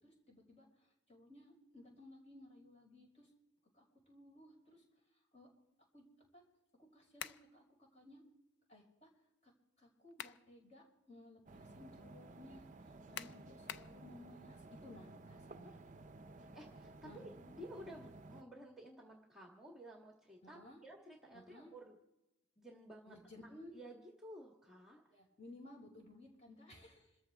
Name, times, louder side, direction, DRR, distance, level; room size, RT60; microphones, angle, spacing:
voice 1, 0.0-3.3 3.7-4.8 5.3-5.5 5.9-6.1 6.3-6.4 6.9-8.2 8.7-9.1 9.4-9.5 9.8-15.7 17.0-17.2 20.4-20.8 21.3-21.7 23.1-23.7 25.1-27.2, left 1 dB, 35° left, -1 dB, 5.9 m, -58 dB
sound 1, 7.2-7.5 9.8-10.5 11.0-11.1 13.1-14.0, left 9 dB, 55° left, 0.5 m, -47 dB
sound 2, 11.5-18.4, right 2 dB, 40° right, 0.6 m, -55 dB
voice 2, 16.4-22.0 22.6-23.1 23.7-25.0, equal, ahead, 0 dB, 1.7 m, -54 dB
27.5 x 14.0 x 3.5 m, 0.97 s
head